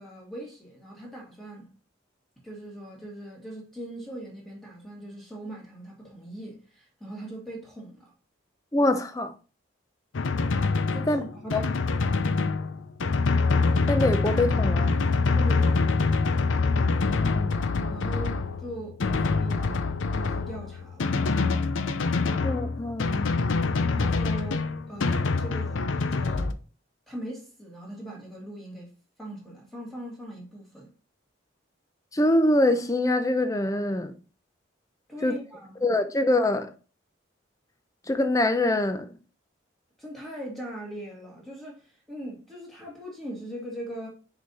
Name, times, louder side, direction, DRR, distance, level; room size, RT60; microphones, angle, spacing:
voice 1, 0.0-1.7 2.4-8.1 10.9-12.0 15.3-16.0 17.9-21.1 23.9-26.6 27.1-28.9 29.2-30.9 35.1-35.9 40.0-44.1, right 1 dB, ahead, 2.1 m, -40 dB
voice 2, 8.7-9.3 11.1-11.2 11.5-11.6 13.9-15.0 16.8-17.6 22.4-23.3 32.1-34.1 35.2-35.4 35.8-36.7 38.1-39.1, left 1 dB, 15° left, 0.6 m, -24 dB
Drum, 10.1-26.5, left 4 dB, 80° left, 0.6 m, -25 dB
6.0 x 4.0 x 4.1 m
head